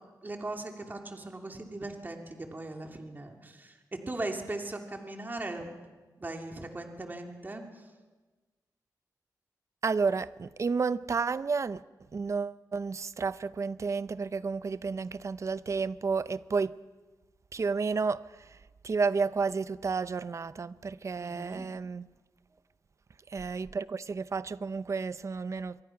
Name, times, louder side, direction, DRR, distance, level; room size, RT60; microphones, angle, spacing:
voice 1, 0.2-3.8 4.1-5.8 6.2-7.6 21.2-21.7, right 2 dB, 25° right, 2.7 m, -39 dB
voice 2, 9.8-11.8 12.1-16.7 17.5-18.2 18.8-22.1 23.3-25.8, right 4 dB, 45° right, 0.7 m, -31 dB
26.5 x 23.0 x 5.9 m
wide cardioid pair, 105°, 7 cm